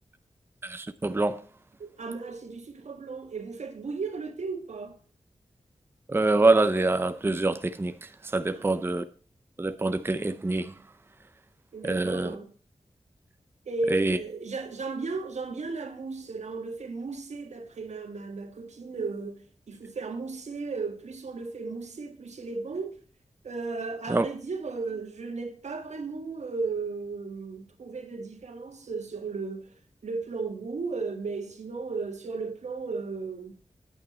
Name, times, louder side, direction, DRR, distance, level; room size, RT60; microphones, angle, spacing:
voice 1, 0.6-1.4 6.1-7.9 8.3-9.0 9.6-10.7 11.8-12.4 13.9-14.2 24.1-24.2, right 2 dB, 20° right, 0.6 m, -25 dB
voice 2, 1.8-5.0 8.5-8.7 11.7-12.5 13.7-23.0 23.4-29.7 30.0-33.5, right 4 dB, 80° right, 1.7 m, -35 dB
9.3 x 8.5 x 4.2 m
wide cardioid pair, 115°, 12 cm